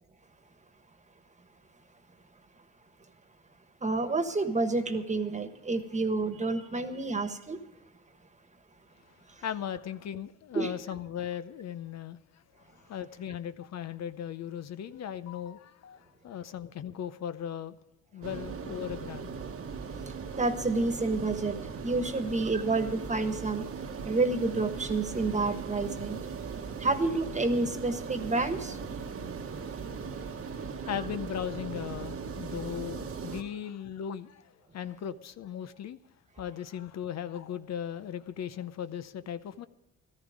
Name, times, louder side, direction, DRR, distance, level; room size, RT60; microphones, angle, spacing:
voice 1, 3.8-7.6 10.5-10.7 20.3-23.6 24.0-26.2 26.8-28.8, right 3 dB, 25° right, 1.4 m, -29 dB
voice 2, 9.4-12.2 12.9-17.7 18.1-19.3 30.6-36.0 36.4-39.7, left 9 dB, 60° left, 0.7 m, -37 dB
sound 1, 18.2-33.4, right 5 dB, 50° right, 1.2 m, -39 dB
14.0 x 13.5 x 5.0 m
cardioid pair, 90°, 30 cm